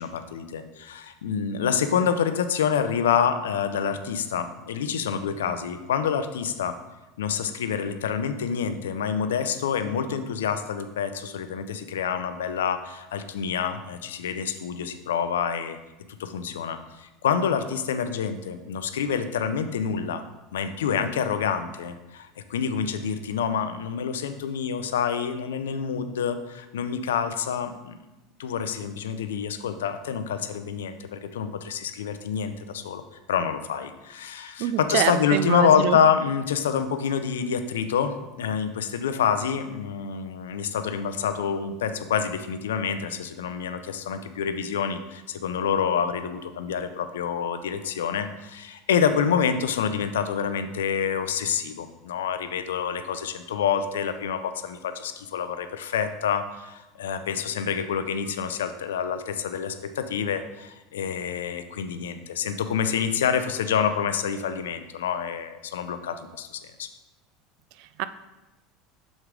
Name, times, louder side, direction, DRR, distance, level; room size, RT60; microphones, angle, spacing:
voice 1, 0.0-6.8 7.2-15.8 16.2-20.2 20.5-28.0 28.4-33.0 33.3-66.9, left 7 dB, 85° left, 10 dB, 0.5 m, -27 dB
voice 2, 34.6-36.0 67.8-68.0, right 11 dB, 65° right, 13 dB, 0.4 m, -26 dB
6.3 x 4.7 x 3.6 m, 1.0 s
hypercardioid pair, 90°, 0 cm